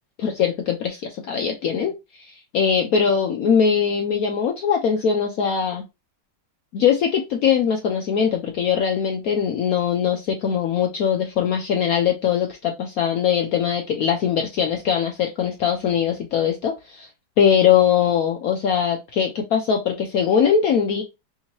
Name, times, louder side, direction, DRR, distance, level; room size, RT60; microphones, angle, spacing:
voice 1, 0.2-5.8 6.7-17.1 17.4-21.0, left 7 dB, 75° left, 2 dB, 0.8 m, -21 dB
3.5 x 2.8 x 2.8 m, 0.24 s
omnidirectional pair, 2.0 m